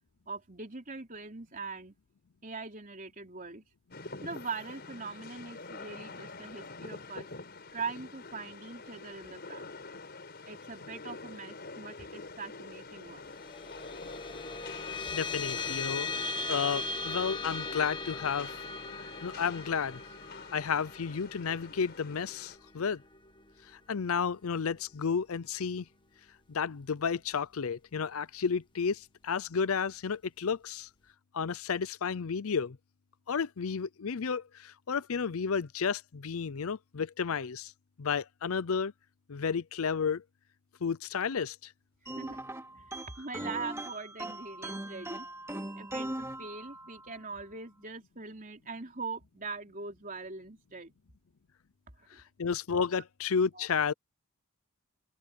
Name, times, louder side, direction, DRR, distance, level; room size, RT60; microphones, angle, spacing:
voice 1, 0.3-1.9 2.4-3.6 4.2-7.3 7.7-9.7 10.5-13.3 42.2-42.4 42.7-45.3 45.8-50.9 52.0-52.2 53.0-53.1 53.5-53.7, right 4 dB, 40° right, 3.8 m, -42 dB
Rain, 3.9-22.6, left 3 dB, 45° left, 5.0 m, -46 dB
sound 1, 13.2-24.0, left 3 dB, 20° left, 1.6 m, -39 dB
voice 2, 15.1-18.5 19.2-20.0 20.5-23.0 23.7-25.8 26.5-30.9 31.3-32.8 33.3-37.7 38.0-38.9 39.3-40.2 40.8-41.7 52.2-53.9, left 6 dB, 70° left, 0.6 m, -32 dB
sound 2, 42.1-47.1, right 1 dB, 10° right, 2.8 m, -40 dB
open air
head